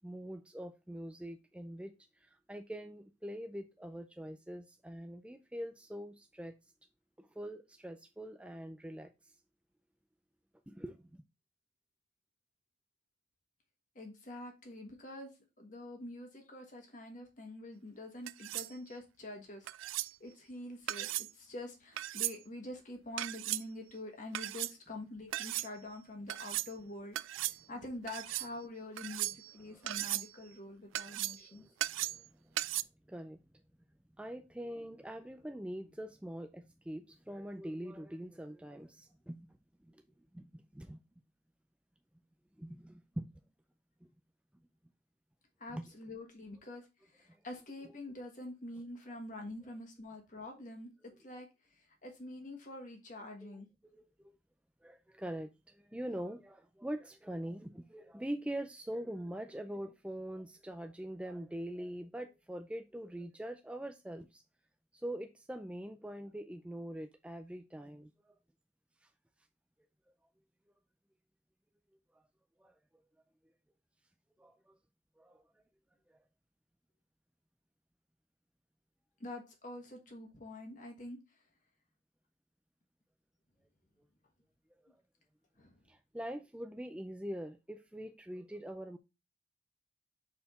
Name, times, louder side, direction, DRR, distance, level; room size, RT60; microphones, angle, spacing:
voice 1, 0.0-6.5 7.2-9.4 10.7-11.2 29.6-30.1 31.0-31.2 31.5-32.6 33.1-33.4 34.2-39.6 39.8-40.0 40.3-41.0 42.6-43.3 44.0-44.1 45.7-45.9 47.3-47.4 53.4-53.6 53.9-54.3 54.8-64.4 64.9-68.3 69.0-69.1 72.1-72.2 72.6-72.8 74.4-74.8 75.2-75.4 76.1-76.2 85.9-89.0, right 1 dB, 5° right, 0.3 m, -44 dB
voice 2, 13.9-31.6 45.6-50.9 51.2-53.7 79.2-81.4 85.6-85.8, left 1 dB, 40° left, 1.3 m, -46 dB
sound 1, 18.3-18.7 19.7-20.1 20.9-21.3 22.0-22.4 23.2-23.6 24.3-24.7 25.3-25.7 26.3-26.7 27.2-27.6 28.1-28.5 29.0-29.5 29.9-30.3 31.0-31.5 31.8-32.3 32.6-32.8, right 16 dB, 85° right, 0.3 m, -36 dB
5.7 x 4.4 x 4.1 m
head